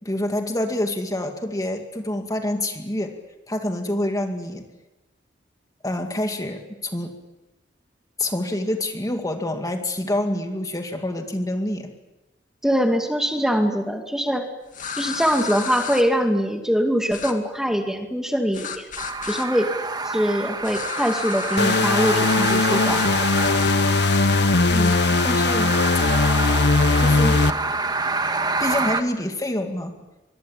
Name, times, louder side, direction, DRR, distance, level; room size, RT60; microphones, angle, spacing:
voice 1, 0.0-3.2 3.5-4.6 5.8-7.1 8.2-11.9 24.7-25.0 25.2-25.8 27.0-27.4 28.6-29.9, left 1 dB, 20° left, 5 dB, 2.2 m, -27 dB
voice 2, 12.6-14.5 14.9-18.9 19.3-19.7 20.0-23.1, equal, 5° right, 4 dB, 2.3 m, -23 dB
sound 1, 14.7-16.0 17.1-17.3 18.5-19.5 20.6-21.9 22.2-22.6 22.9-23.1 23.3-24.2 24.7-25.0, left 6 dB, 45° left, 2.2 m, -32 dB
sound 2, 19.0-29.0, right 3 dB, 25° right, 1.5 m, -27 dB
sound 3, 21.6-27.5, left 3 dB, 65° left, 0.9 m, -19 dB
24.0 x 23.0 x 8.7 m, 1.0 s
head